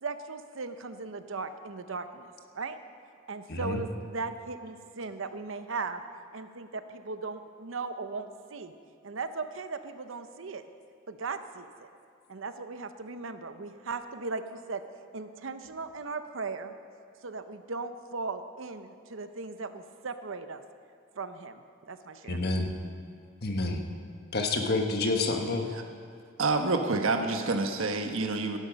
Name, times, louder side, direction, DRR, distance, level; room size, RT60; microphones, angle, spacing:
voice 1, 0.0-2.8 3.3-6.0 6.3-8.7 9.0-10.6 11.1-11.9 12.3-14.8 15.1-16.7 17.2-20.6 21.2-22.4, right 4 dB, 70° right, 9 dB, 0.8 m, -38 dB
voice 2, 3.5-3.8 22.3-22.7 23.4-23.8 24.3-25.7, left 2 dB, 50° left, 3 dB, 1.3 m, -28 dB
voice 3, 26.4-28.6, right 3 dB, 85° right, 5 dB, 1.2 m, -28 dB
16.5 x 11.5 x 5.2 m, 2.5 s
head